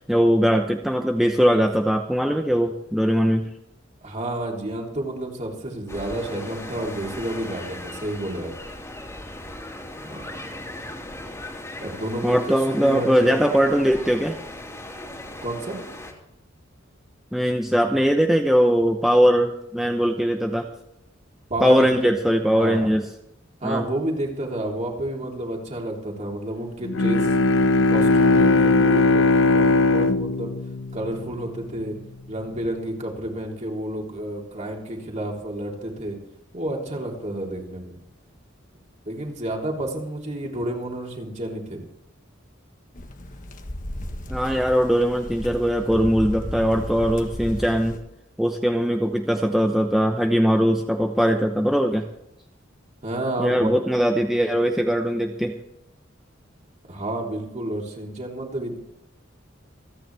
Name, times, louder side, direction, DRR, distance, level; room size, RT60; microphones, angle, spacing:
voice 1, 0.0-3.5 12.2-14.4 17.3-20.7 21.6-23.1 23.6-23.8 44.3-48.0 48.4-52.1 53.4-55.5, equal, ahead, 3 dB, 0.9 m, -20 dB
voice 2, 4.0-8.5 10.0-10.6 11.8-13.4 15.4-15.8 21.5-22.2 22.6-22.9 23.6-27.3 27.9-30.5 30.9-32.0 32.3-36.2 36.5-37.9 39.1-41.8 53.0-53.8 56.9-58.8, right 1 dB, 35° right, -1 dB, 3.5 m, -30 dB
sound 1, 5.9-16.1, left 1 dB, 15° left, 2.7 m, -38 dB
Bowed string instrument, 26.8-31.7, left 3 dB, 75° left, 0.7 m, -19 dB
sound 2, 43.0-48.0, left 1 dB, 40° left, 1.4 m, -34 dB
28.0 x 9.6 x 3.4 m, 0.81 s
head